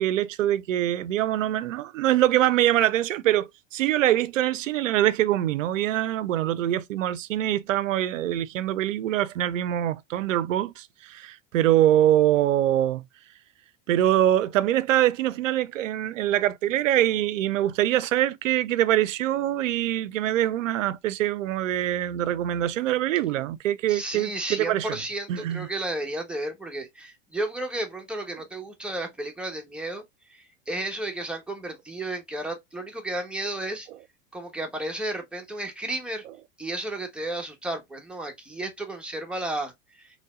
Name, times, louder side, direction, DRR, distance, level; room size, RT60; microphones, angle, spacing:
voice 1, 0.0-13.0 13.9-24.9 25.3-25.7, right 12 dB, 80° right, 0.5 m, -24 dB
voice 2, 23.9-30.0 30.3-33.9 34.3-36.2 36.6-40.2, right 1 dB, 5° right, 1.1 m, -33 dB
3.8 x 3.2 x 2.3 m
hypercardioid pair, 95°, 38 cm